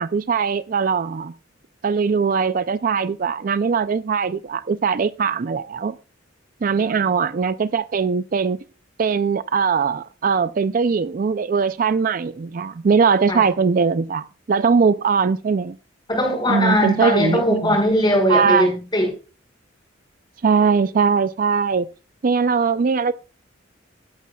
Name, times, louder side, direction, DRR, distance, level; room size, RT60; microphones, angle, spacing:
voice 1, 0.0-1.3 1.8-5.9 6.6-8.6 9.0-15.8 16.5-17.8 18.3-18.7 20.4-21.9 22.2-23.1, right 5 dB, 45° right, 0.4 m, -20 dB
voice 2, 16.1-19.1, equal, 25° left, 5.0 m, -20 dB
13.5 x 11.5 x 2.3 m
head